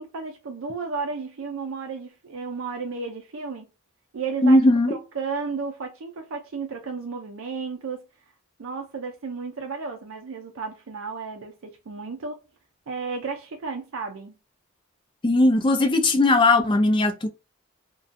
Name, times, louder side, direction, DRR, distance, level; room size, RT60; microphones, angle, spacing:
voice 1, 0.0-3.7 4.1-4.6 4.9-8.0 8.6-12.4 12.9-14.3, right 4 dB, 75° right, 0.5 m, -33 dB
voice 2, 4.4-5.0 15.2-17.3, left 2 dB, 25° left, 0.4 m, -18 dB
2.6 x 2.2 x 2.4 m
head